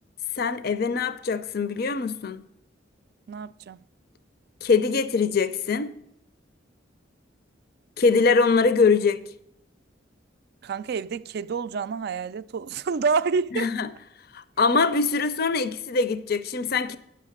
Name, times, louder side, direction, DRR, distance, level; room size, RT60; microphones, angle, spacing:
voice 1, 0.4-2.4 4.6-5.9 8.0-9.2 13.5-13.9 14.3-17.0, left 4 dB, 55° left, 0.5 m, -23 dB
voice 2, 3.3-3.8 10.6-13.7, right 5 dB, 55° right, 0.4 m, -28 dB
9.8 x 6.5 x 6.5 m
head